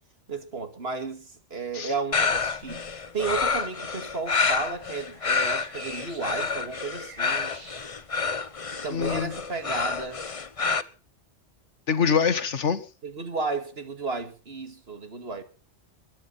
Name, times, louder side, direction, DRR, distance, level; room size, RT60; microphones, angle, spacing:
voice 1, 0.3-2.9 3.1-7.6 8.8-10.2 13.0-15.4, right 4 dB, 60° right, 2.5 m, -33 dB
sound 1, 2.1-10.8, left 5 dB, 35° left, 0.8 m, -28 dB
sound 2, 3.0-9.0, right 1 dB, 25° right, 6.1 m, -50 dB
voice 2, 8.9-9.4 11.9-12.8, left 6 dB, 90° left, 1.7 m, -24 dB
22.0 x 9.4 x 5.6 m
omnidirectional pair, 1.2 m